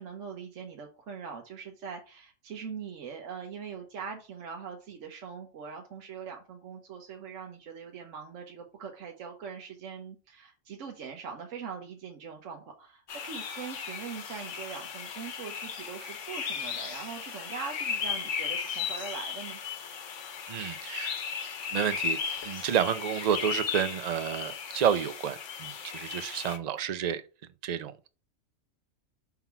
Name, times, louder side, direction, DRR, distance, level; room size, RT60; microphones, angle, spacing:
voice 1, 0.0-19.6, right 6 dB, 75° right, 1.3 m, -42 dB
sound 1, 13.1-26.6, left 7 dB, 70° left, 1.2 m, -36 dB
voice 2, 20.5-21.2 21.7-27.2 27.6-28.1, right 9 dB, 55° right, 0.4 m, -30 dB
5.8 x 3.9 x 5.7 m
omnidirectional pair, 1.3 m